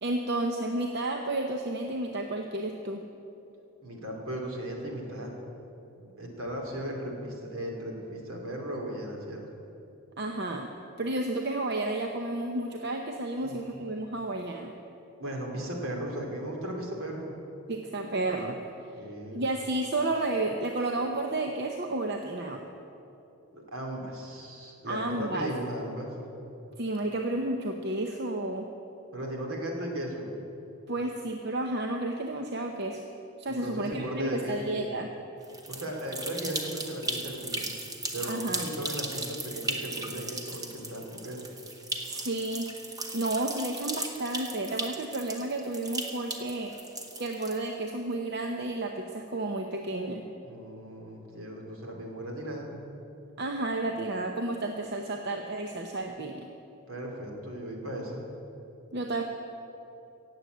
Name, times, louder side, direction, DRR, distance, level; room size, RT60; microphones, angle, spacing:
voice 1, 0.0-3.0 10.2-10.7 11.0-14.7 17.7-18.6 19.3-22.6 24.9-25.5 26.8-28.7 30.9-33.0 33.4-35.1 38.3-38.6 42.0-42.7 43.1-46.8 47.2-50.3 53.4-56.5 58.9-59.2, right 2 dB, 50° right, 3 dB, 0.8 m, -31 dB
voice 2, 3.8-5.3 6.2-9.5 13.4-13.8 15.2-17.3 18.9-19.4 23.5-26.2 29.1-30.3 33.5-34.7 35.7-37.7 38.1-41.4 50.4-52.7 56.9-58.3, right 1 dB, 70° right, 1 dB, 2.7 m, -36 dB
sound 1, 35.4-47.9, right 2 dB, 15° right, 0.9 m, -37 dB
17.0 x 7.8 x 8.1 m, 2.9 s
head